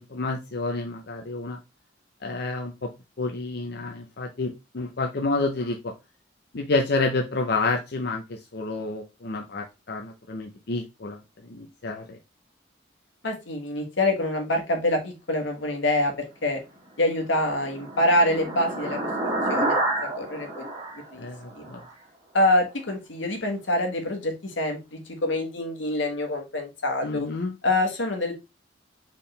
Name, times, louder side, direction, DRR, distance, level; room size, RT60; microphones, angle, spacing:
voice 1, 0.0-1.6 2.2-2.9 3.2-5.9 6.5-12.2 21.2-21.8 27.0-27.5, left 3 dB, 60° left, 3 dB, 0.6 m, -29 dB
voice 2, 13.2-16.1 16.4-16.6 17.0-19.0 19.5-19.8 20.2-20.6 21.1-21.3 21.5-21.6 22.3-27.3 27.6-28.3, left 1 dB, 85° left, 3 dB, 1.5 m, -25 dB
sound 1, 17.1-21.9, right 2 dB, 25° right, 1.5 m, -29 dB
4.4 x 3.7 x 3.2 m, 0.24 s
head